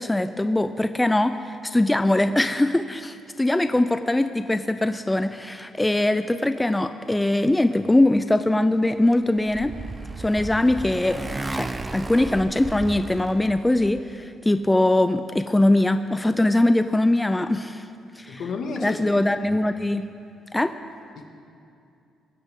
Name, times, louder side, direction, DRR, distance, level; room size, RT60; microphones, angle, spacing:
voice 1, 0.0-9.7 10.2-11.2 11.5-17.9 18.2-18.4 18.8-20.1 20.5-20.7, left 1 dB, 10° left, 9 dB, 0.5 m, -22 dB
Motorcycle, 9.0-14.0, right 2 dB, 20° right, 0.7 m, -34 dB
voice 2, 18.3-19.5 21.2-21.3, left 3 dB, 70° left, 3 dB, 1.9 m, -33 dB
21.0 x 15.5 x 3.7 m, 2.5 s
cardioid pair, 90°, 0 cm